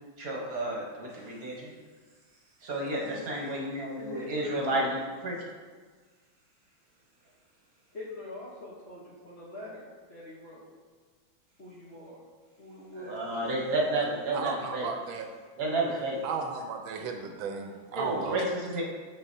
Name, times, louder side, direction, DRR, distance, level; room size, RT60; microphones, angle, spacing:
voice 1, 0.2-1.7 2.6-5.4 13.0-14.9 15.6-16.2 17.9-18.8, right 2 dB, 55° right, -3 dB, 1.2 m, -31 dB
voice 2, 3.0-3.4 4.0-5.0 7.9-10.7 11.6-12.2 12.6-13.9, left 2 dB, 45° left, -7 dB, 0.8 m, -43 dB
voice 3, 14.3-15.3 16.2-18.4, right 5 dB, 75° right, 3 dB, 1.3 m, -34 dB
6.8 x 5.6 x 2.7 m, 1.5 s
omnidirectional pair, 2.3 m